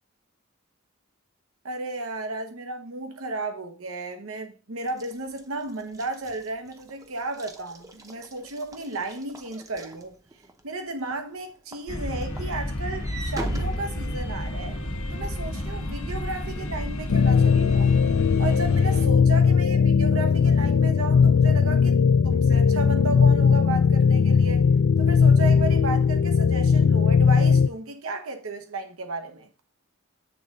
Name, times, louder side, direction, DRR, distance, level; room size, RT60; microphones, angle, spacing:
voice 1, 1.6-10.1 10.6-14.8 15.1-18.0 18.4-22.0 22.2-24.7 25.0-29.5, right 2 dB, 80° right, 0.9 m, -34 dB
Walk footsteps / Slam, 4.9-10.6 11.1-11.4 11.7-14.7, right 1 dB, 15° right, 0.7 m, -38 dB
sound 1, 11.9-19.1, left 1 dB, 80° left, 1.2 m, -31 dB
sound 2, 17.1-27.7, left 6 dB, 65° left, 0.4 m, -19 dB
8.6 x 3.7 x 5.2 m
head